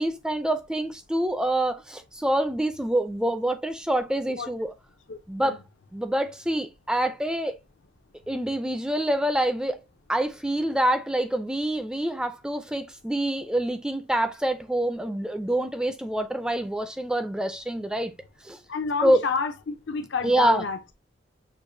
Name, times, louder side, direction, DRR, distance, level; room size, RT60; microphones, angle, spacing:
voice 1, 0.0-4.7 5.3-5.6 5.9-7.5 8.3-9.8 10.1-18.1 18.4-18.6 19.0-19.2 20.2-20.6, right 1 dB, 5° right, 0.4 m, -26 dB
voice 2, 5.1-5.6 18.7-20.8, left 5 dB, 75° left, 0.6 m, -29 dB
6.4 x 2.5 x 2.6 m
head